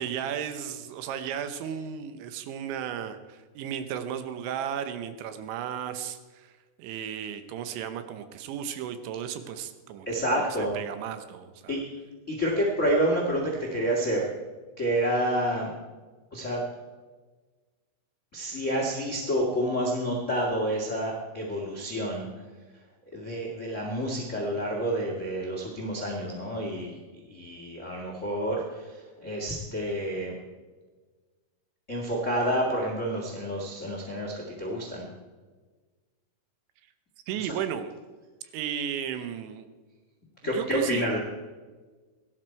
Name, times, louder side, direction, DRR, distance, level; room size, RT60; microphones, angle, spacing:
voice 1, 0.0-6.5 6.8-10.1 10.6-11.8 37.3-37.9 38.5-39.7 40.4-41.1, right 9 dB, 80° right, 9 dB, 3.1 m, -34 dB
voice 2, 10.0-10.7 11.7-11.9 12.3-14.3 14.8-15.7 16.3-16.6 18.3-22.3 23.1-26.9 27.3-30.4 31.9-35.0 37.4-37.5 40.4-41.2, equal, 70° left, -2 dB, 0.7 m, -29 dB
17.0 x 12.5 x 4.5 m, 1.3 s
omnidirectional pair, 5.5 m